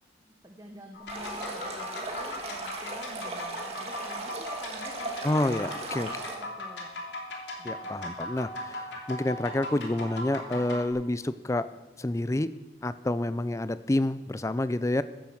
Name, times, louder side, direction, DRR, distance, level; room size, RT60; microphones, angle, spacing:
voice 1, 0.4-7.0 7.6-7.9, right 1 dB, 20° right, 2 dB, 1.1 m, -48 dB
sound 1, 0.9-10.9, left 1 dB, 75° left, 3.0 m, -39 dB
Stream, 1.1-6.3, right 2 dB, 35° right, 2.2 m, -37 dB
voice 2, 5.2-6.1 7.6-11.7 12.0-12.5 12.8-15.0, left 1 dB, 15° left, 14 dB, 0.4 m, -28 dB
15.0 x 10.5 x 7.3 m, 1.2 s
head